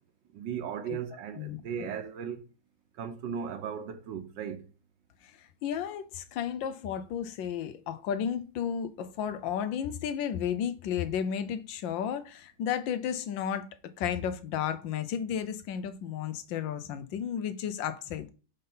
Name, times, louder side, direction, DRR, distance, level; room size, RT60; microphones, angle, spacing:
voice 1, 0.3-2.4 3.0-4.6, right 7 dB, 75° right, 1.5 m, -36 dB
voice 2, 5.2-13.7 14.0-18.3, left 8 dB, 85° left, 1.4 m, -33 dB
5.4 x 3.9 x 5.5 m
omnidirectional pair, 2.0 m